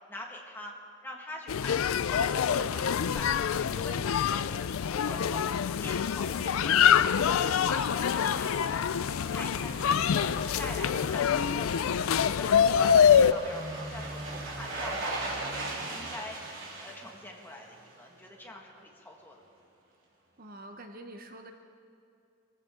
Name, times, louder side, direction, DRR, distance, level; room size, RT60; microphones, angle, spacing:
voice 1, 0.1-0.7 1.0-1.8 2.0-4.5 4.8-8.9 9.3-10.3 10.6-11.9 12.3-16.4 16.8-19.4, left 1 dB, 10° left, -1 dB, 1.8 m, -44 dB
sound 1, 1.5-13.3, left 8 dB, 85° left, 0.4 m, -25 dB
sound 2, 6.2-18.1 18.4-18.5, right 2 dB, 70° right, 3.1 m, -40 dB
voice 2, 20.4-21.5, right 1 dB, 45° right, 5 dB, 0.9 m, -46 dB
24.0 x 15.5 x 3.8 m, 2.6 s
head